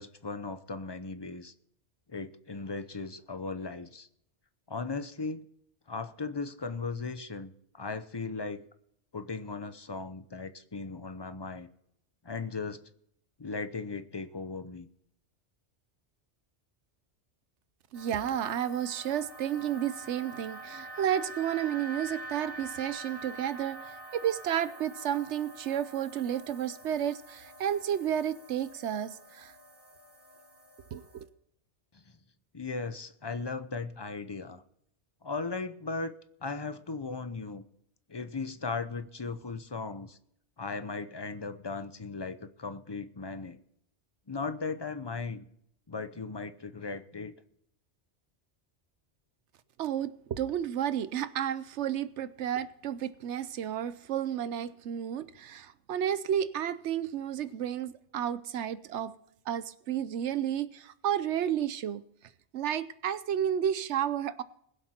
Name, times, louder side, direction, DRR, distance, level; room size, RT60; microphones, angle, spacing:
voice 1, 0.0-1.5 2.1-4.1 4.7-5.5 5.9-8.6 9.1-11.7 12.2-12.8 13.4-14.9 31.9-32.0 32.5-34.6 35.2-36.1 36.4-37.6 38.1-40.2 40.6-43.6 44.3-45.5 45.9-47.3, left 4 dB, 25° left, 0.7 m, -37 dB
sound 1, 17.9-31.2, right 2 dB, 55° right, 3.5 m, -46 dB
voice 2, 17.9-29.5 30.9-31.3 49.8-59.1 59.5-62.0 62.5-64.4, right 10 dB, 90° right, 1.0 m, -32 dB
21.0 x 7.9 x 4.4 m
omnidirectional pair, 1.1 m